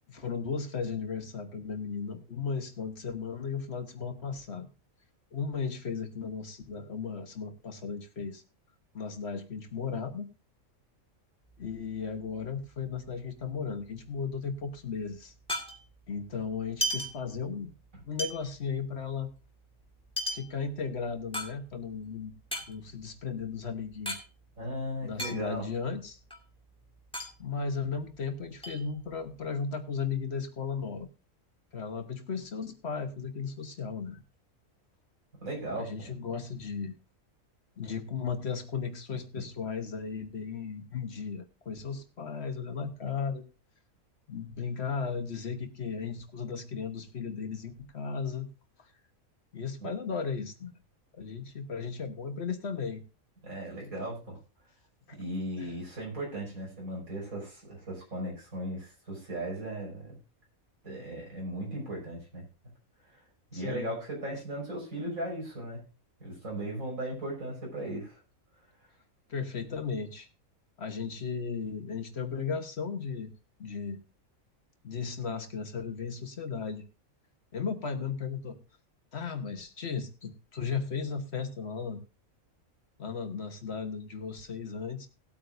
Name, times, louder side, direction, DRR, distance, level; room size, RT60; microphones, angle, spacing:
voice 1, 0.0-4.7 5.3-8.4 8.9-10.3 11.6-15.3 16.1-17.7 18.1-19.3 20.3-22.3 22.7-24.2 25.0-26.2 27.4-31.1 31.7-34.2 35.7-37.0 37.8-43.5 44.3-48.5 49.5-50.7 51.2-53.0 55.1-55.2 55.6-55.7 63.5-64.0 64.3-64.4 69.3-70.3 70.8-73.3 73.6-74.0 74.8-76.8 77.5-78.6 79.1-82.0 83.0-85.1, left 5 dB, 55° left, 7 dB, 1.4 m, -35 dB
sound 1, 11.5-13.2 13.4-13.5 13.8-16.2 16.6-17.8 18.2-22.0 22.4-24.2 24.5-24.6 24.9-25.8 26.2-28.2 28.6-29.5, equal, 5° left, 1.8 m, -37 dB
voice 2, 24.6-25.7 35.4-36.1 39.3-39.4 49.8-49.9 53.4-54.4 55.2-60.1 60.8-62.4 63.5-65.8 66.2-68.2, right 1 dB, 80° right, -3 dB, 6.3 m, -37 dB
18.0 x 8.6 x 2.6 m, 0.31 s
omnidirectional pair, 1.4 m